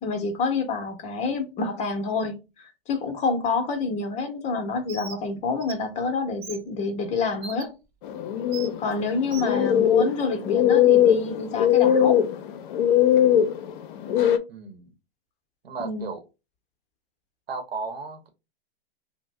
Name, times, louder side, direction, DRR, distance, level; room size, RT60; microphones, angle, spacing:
voice 1, 0.0-7.7 8.8-12.2 15.8-16.1, left 4 dB, 25° left, 0.7 m, -28 dB
Bird, 4.9-5.2 5.6-5.7 6.4-6.6 7.4-7.6 8.5-8.7 9.3-9.5, right 6 dB, 30° right, 0.8 m, -38 dB
sound 1, 8.0-14.4, left 10 dB, 60° left, 0.5 m, -21 dB
voice 2, 9.4-9.8 14.5-14.9 15.6-16.2 17.5-18.3, right 4 dB, 80° right, 0.9 m, -35 dB
2.5 x 2.0 x 3.1 m
hypercardioid pair, 115°, 29 cm